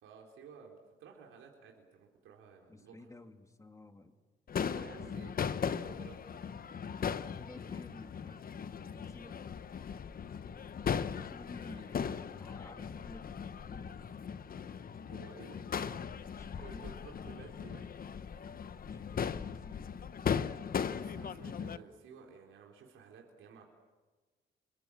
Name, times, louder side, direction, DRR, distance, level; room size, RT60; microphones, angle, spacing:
voice 1, 0.0-3.1 4.7-6.4 11.7-11.8 14.3-14.7 15.1-15.6 16.1-18.0 20.8-23.7, right 6 dB, 85° right, 0 dB, 4.1 m, -54 dB
voice 2, 2.7-4.2 4.5-5.3 7.3-8.4 8.9-9.4 11.3-13.4 13.7-13.9 16.3-17.0 18.9-19.9, left 2 dB, 15° left, 6 dB, 2.7 m, -53 dB
Crowd / Fireworks, 4.5-21.8, left 7 dB, 45° left, 1.0 m, -38 dB
29.5 x 23.5 x 7.5 m, 1.3 s
cardioid pair, 90°, 20 cm